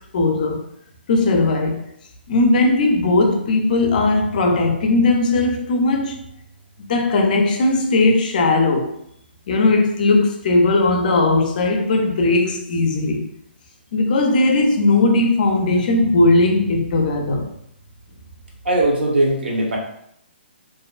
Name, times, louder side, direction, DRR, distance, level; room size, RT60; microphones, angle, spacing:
voice 1, 0.1-0.6 1.1-1.8 2.3-6.2 6.9-8.9 9.5-13.2 13.9-17.5, left 2 dB, 45° left, 0.4 m, -18 dB
voice 2, 18.6-19.8, right 1 dB, 70° right, 0.8 m, -19 dB
2.5 x 2.2 x 2.3 m
hypercardioid pair, 160°, 6 cm